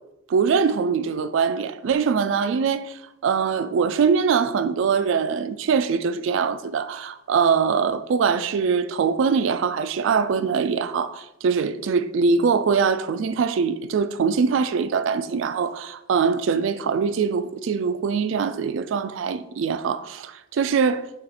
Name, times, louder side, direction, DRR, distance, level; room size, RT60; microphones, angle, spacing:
voice 1, 0.3-21.0, right 6 dB, 65° right, 0.3 m, -23 dB
5.3 x 2.4 x 4.1 m
head